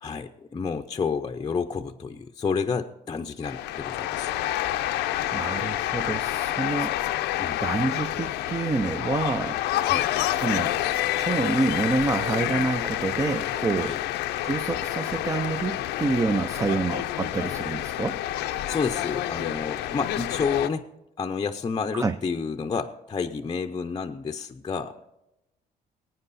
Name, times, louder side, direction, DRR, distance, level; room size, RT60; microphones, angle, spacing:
voice 1, 0.0-4.3 7.4-7.6 9.8-10.1 13.8-14.0 18.7-20.9 21.2-25.0, left 5 dB, 25° left, 5 dB, 0.6 m, -30 dB
sound 1, 3.4-20.7, left 13 dB, 85° left, 0.7 m, -28 dB
voice 2, 5.3-7.0 7.6-9.6 10.3-10.8 11.2-14.0 14.4-18.2 21.9-22.2, right 3 dB, 20° right, 9 dB, 0.5 m, -27 dB
20.5 x 9.1 x 4.1 m, 0.91 s
cardioid pair, 110°, 17 cm